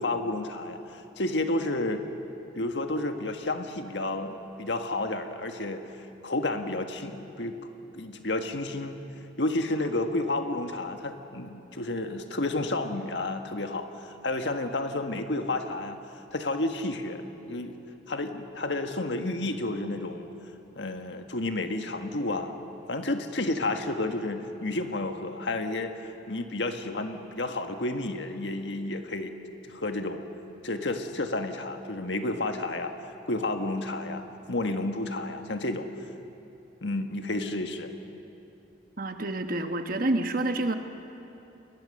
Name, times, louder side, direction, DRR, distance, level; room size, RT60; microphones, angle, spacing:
voice 1, 0.0-2.1 2.5-5.8 6.2-7.6 7.9-9.0 9.4-16.0 16.3-17.8 18.1-20.3 20.7-22.6 22.9-29.3 29.6-30.2 30.6-32.9 33.3-35.9 36.8-37.9, left 2 dB, 70° left, 6 dB, 1.6 m, -31 dB
voice 2, 39.0-40.7, right 2 dB, 50° right, 7 dB, 1.2 m, -28 dB
29.5 x 21.5 x 6.6 m, 2.9 s
head